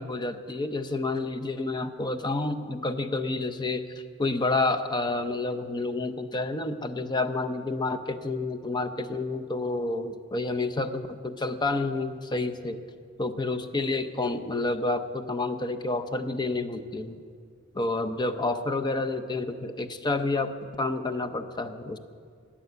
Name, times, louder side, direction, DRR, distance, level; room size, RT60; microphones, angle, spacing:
voice 1, 0.0-3.8 4.2-12.8 13.2-17.2 17.7-22.0, left 2 dB, 20° left, 8 dB, 0.6 m, -29 dB
13.5 x 10.0 x 8.1 m, 2.1 s
head